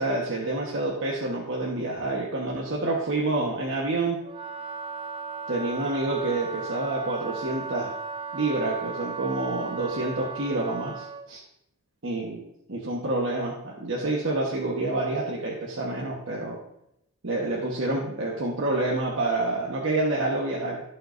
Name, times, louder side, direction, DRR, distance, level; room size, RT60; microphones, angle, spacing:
voice 1, 0.0-4.2 5.5-7.9 8.3-11.4 12.0-12.4 12.7-16.6 17.2-20.8, right 2 dB, 60° right, -3 dB, 1.3 m, -28 dB
Wind instrument woodwind instrument, 4.2-11.3, right 5 dB, 25° right, 0.4 m, -36 dB
16.0 x 5.6 x 2.7 m, 0.80 s
head